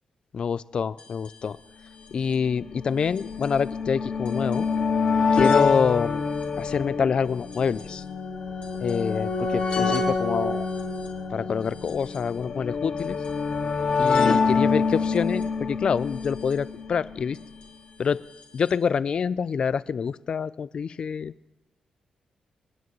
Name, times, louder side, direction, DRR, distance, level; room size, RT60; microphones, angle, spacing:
voice 1, 0.3-1.6 2.1-4.7 5.3-6.2 6.6-8.0 8.8-10.7 11.3-13.2 14.0-17.4 18.0-18.2 18.5-21.3, left 6 dB, 50° left, 18 dB, 0.4 m, -26 dB
sound 1, 1.0-1.1 1.3-1.4 2.2-17.5 18.4-18.5 18.7-18.8, left 4 dB, 65° left, 2.3 m, -26 dB
28.0 x 9.6 x 3.1 m, 0.98 s
cardioid pair, 120°, 2 cm